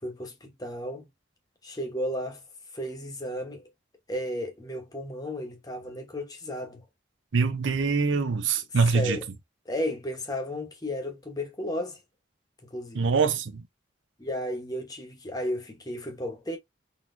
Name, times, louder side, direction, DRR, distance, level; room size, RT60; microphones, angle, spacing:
voice 1, 0.0-1.1 1.6-2.4 2.7-3.7 4.1-6.8 8.9-9.2 9.7-12.0 12.6-13.0 14.2-16.6, left 1 dB, 20° left, 1.0 m, -33 dB
voice 2, 7.3-9.2 12.9-13.6, right 4 dB, 85° right, 0.7 m, -24 dB
4.0 x 2.8 x 2.5 m
head